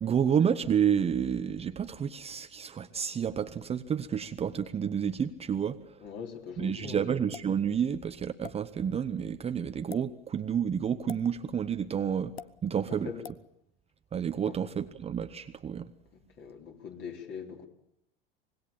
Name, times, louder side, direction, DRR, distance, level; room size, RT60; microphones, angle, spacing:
voice 1, 0.0-6.0 6.6-12.3 12.6-13.1 14.1-15.9, right 8 dB, 20° right, 0.9 m, -30 dB
voice 2, 6.0-7.0 12.9-13.2 14.5-14.6 16.1-17.7, left 6 dB, 40° left, 4.0 m, -42 dB
sound 1, 7.3-7.6 8.4-8.6 9.8-10.0 11.1-11.3 12.4-12.5 13.2-13.4, left 7 dB, 90° left, 0.8 m, -43 dB
25.0 x 20.0 x 7.2 m
figure-of-eight pair, 85°, 29 cm